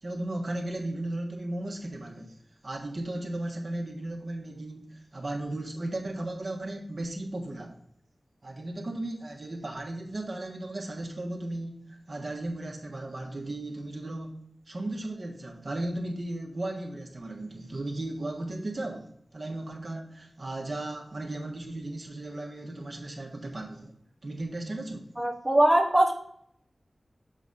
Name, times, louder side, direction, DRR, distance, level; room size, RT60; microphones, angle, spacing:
voice 1, 0.0-2.4 2.6-7.8 8.4-14.4 14.7-23.9 24.2-25.1, right 1 dB, 50° right, 0 dB, 1.3 m, -35 dB
voice 2, 25.2-26.1, right 1 dB, 10° right, 2 dB, 0.9 m, -21 dB
7.5 x 4.0 x 4.0 m, 0.68 s
wide cardioid pair, 60°, 0 cm